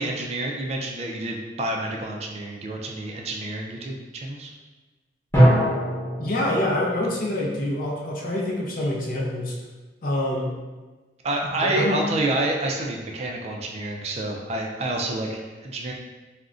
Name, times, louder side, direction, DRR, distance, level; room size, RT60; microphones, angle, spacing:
voice 1, 0.0-4.5 11.2-15.9, right 2 dB, 35° right, 0 dB, 0.3 m, -28 dB
sound 1, 5.3-8.1, equal, 15° left, 0.8 m, -22 dB
voice 2, 6.2-9.6 10.0-10.6 11.6-12.0, left 1 dB, 50° left, -2 dB, 0.5 m, -26 dB
2.4 x 2.1 x 3.6 m, 1.2 s
head